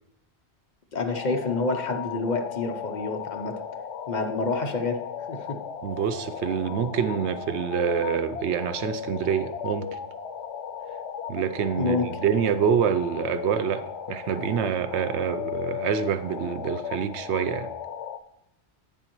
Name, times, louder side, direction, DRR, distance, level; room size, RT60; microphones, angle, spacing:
voice 1, 0.9-3.5 4.1-5.0 5.3-5.6 11.8-12.1, left 3 dB, 45° left, 5 dB, 0.8 m, -28 dB
sound 1, 1.1-18.2, left 8 dB, 90° left, 0.9 m, -36 dB
voice 2, 5.8-10.0 11.3-13.8 14.1-17.7, right 8 dB, 85° right, 11 dB, 0.9 m, -26 dB
9.2 x 7.0 x 3.0 m, 0.84 s
omnidirectional pair, 1.1 m